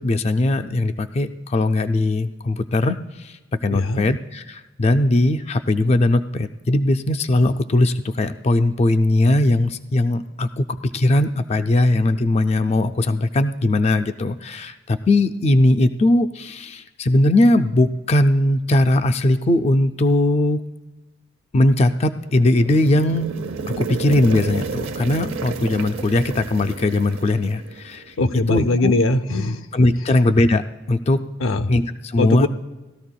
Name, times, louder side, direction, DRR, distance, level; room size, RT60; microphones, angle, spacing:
voice 1, 0.0-3.0 3.2-3.3 3.6-20.6 21.5-23.3 23.7-28.0 28.5-28.9 29.7-31.2 31.7-32.5, left 1 dB, 30° left, 8 dB, 0.3 m, -19 dB
voice 2, 3.7-4.0 28.2-29.6 31.4-31.7 32.2-32.5, left 2 dB, 85° left, 8 dB, 0.6 m, -20 dB
sound 1, 22.1-28.1, right 4 dB, 80° right, 0.7 m, -31 dB
18.5 x 13.0 x 2.2 m, 1.1 s
head